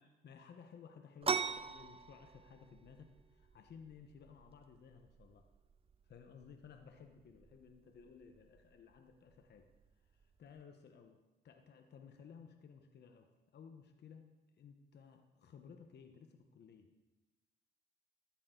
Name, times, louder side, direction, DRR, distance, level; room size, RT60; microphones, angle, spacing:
voice 1, 0.0-5.5 6.0-9.7 10.0-16.9, left 6 dB, 60° left, 5 dB, 1.2 m, -57 dB
sound 1, 1.2-10.6, right 6 dB, 30° right, 0.6 m, -45 dB
14.0 x 13.0 x 3.9 m, 1.1 s
cardioid pair, 90°, 20 cm